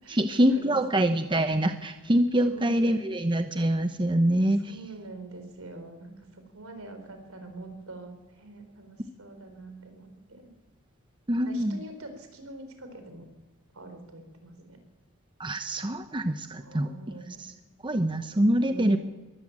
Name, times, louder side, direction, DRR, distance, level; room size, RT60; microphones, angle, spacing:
voice 1, 0.1-4.8 11.3-11.8 15.4-16.9 17.4-17.5 17.8-19.0, right 1 dB, 20° right, 8 dB, 0.9 m, -25 dB
voice 2, 2.4-3.0 4.6-10.5 11.4-13.3 13.7-14.8 16.4-17.4 18.7-19.0, right 3 dB, 70° right, 7 dB, 4.5 m, -44 dB
22.5 x 14.0 x 8.8 m, 1.2 s
head